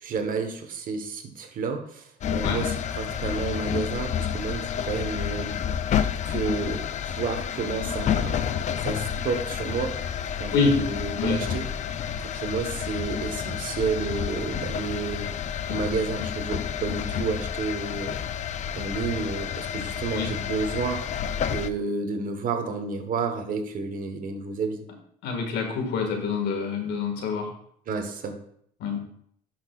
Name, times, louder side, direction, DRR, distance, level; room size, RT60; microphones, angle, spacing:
voice 1, 0.0-5.6 6.3-6.9 7.2-8.5 8.8-10.0 10.4-11.7 12.2-15.3 15.7-18.1 18.8-21.0 21.5-24.8 27.9-28.4, right 4 dB, 55° right, 6 dB, 1.2 m, -30 dB
sound 1, 2.2-21.7, left 8 dB, 45° left, 0.4 m, -30 dB
voice 2, 25.2-27.5 28.8-29.0, left 5 dB, 80° left, 3 dB, 1.9 m, -26 dB
10.5 x 6.0 x 2.4 m, 0.66 s
cardioid pair, 110°, 17 cm